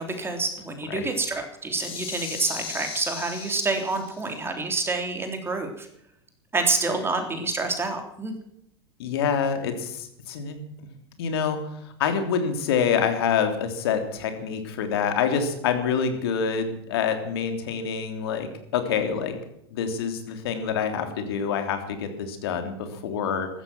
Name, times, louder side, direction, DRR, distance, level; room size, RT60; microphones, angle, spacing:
voice 1, 0.0-5.9 6.5-8.3, right 3 dB, 15° right, 5 dB, 3.5 m, -28 dB
sound 1, 1.7-4.3, left 6 dB, 40° left, 5.4 m, -37 dB
voice 2, 9.0-10.6 11.2-11.6 12.0-19.4 19.7-22.7 23.0-23.5, left 7 dB, 65° left, 7 dB, 3.3 m, -26 dB
15.5 x 13.5 x 6.1 m, 0.77 s
hypercardioid pair, 85°, 14 cm